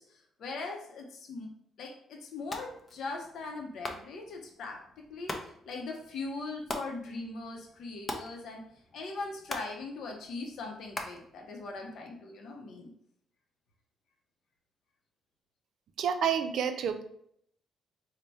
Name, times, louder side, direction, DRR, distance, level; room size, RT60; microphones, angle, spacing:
voice 1, 0.0-1.5 1.8-8.6 8.9-12.9, left 3 dB, 70° left, 2 dB, 0.7 m, -40 dB
sound 1, 2.4-12.1, left 1 dB, 30° left, 0.6 m, -44 dB
voice 2, 16.0-17.0, right 7 dB, 70° right, 8 dB, 0.4 m, -29 dB
4.0 x 2.1 x 3.3 m, 0.70 s
cardioid pair, 90°, 0 cm